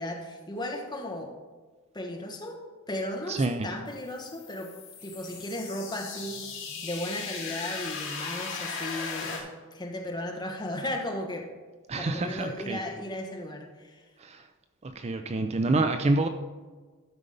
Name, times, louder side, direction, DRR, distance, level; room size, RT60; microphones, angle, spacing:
voice 1, 0.0-1.3 1.9-2.6 2.9-4.7 5.0-6.6 6.8-11.5 12.0-14.0, left 1 dB, 20° left, 2 dB, 1.2 m, -35 dB
voice 2, 3.3-3.7 11.9-12.8 14.2-14.5 14.8-16.3, right 2 dB, 30° right, 8 dB, 0.4 m, -27 dB
sound 1, 3.9-9.4, left 5 dB, 60° left, 2.7 m, -38 dB
12.5 x 5.1 x 5.3 m, 1.4 s
head